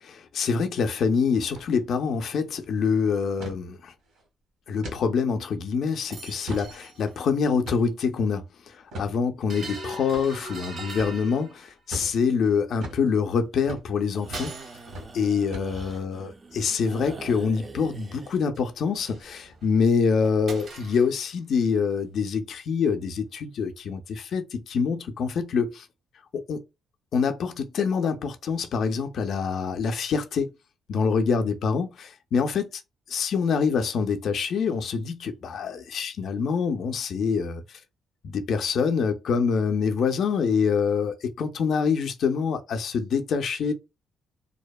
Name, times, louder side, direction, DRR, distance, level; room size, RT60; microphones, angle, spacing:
voice 1, 0.0-3.9 4.7-14.6 15.1-25.9 26.3-26.6 27.1-30.5 30.9-32.7 33.1-37.8 38.2-43.7, left 5 dB, 65° left, 0.3 m, -25 dB
sound 1, 1.4-1.7 2.0-2.1 2.4-2.7 3.4-3.6 4.1-4.2 4.8-5.0 5.5-5.6 6.2-6.7 7.7-8.0 8.9-9.1 10.1-10.3 11.0-11.2 11.9-12.1 12.8-13.0 13.6-13.9 14.3-14.6 14.9-15.1 15.5-16.0, equal, 80° right, 1.5 m, -37 dB
sound 2, 6.1-7.2 7.4-7.5 9.5-11.9 14.2-15.0 18.5-18.6 18.9-19.9 20.2-21.3, right 2 dB, 60° right, 0.9 m, -41 dB
sound 3, 14.1-18.4, right 4 dB, 35° right, 0.4 m, -44 dB
2.6 x 2.1 x 2.2 m
cardioid pair, 90°, 0 cm